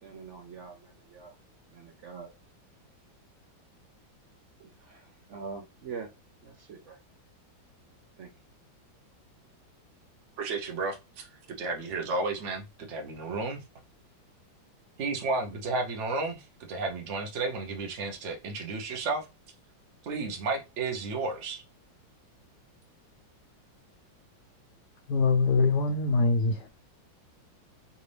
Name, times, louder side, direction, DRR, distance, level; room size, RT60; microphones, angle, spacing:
voice 1, 0.0-1.3 1.7-2.3 4.6-6.1 6.4-7.0 8.2-8.3, right 5 dB, 75° right, 0.6 m, -44 dB
voice 2, 10.4-11.3 11.6-13.6 15.0-19.3 20.0-21.6, right 3 dB, 50° right, 1.0 m, -32 dB
voice 3, 25.1-26.7, left 3 dB, 70° left, 1.3 m, -24 dB
5.1 x 2.6 x 3.4 m
omnidirectional pair, 2.1 m